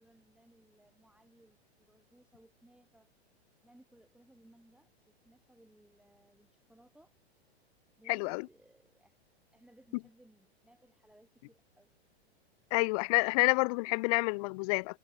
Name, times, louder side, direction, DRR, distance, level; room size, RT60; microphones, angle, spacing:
voice 1, 0.0-3.1 3.6-7.1 8.0-9.2 9.5-11.9, right 1 dB, 5° right, 4.5 m, -63 dB
voice 2, 8.1-8.4 12.7-15.0, left 28 dB, 35° left, 0.4 m, -28 dB
hypercardioid pair, 120°, 33 cm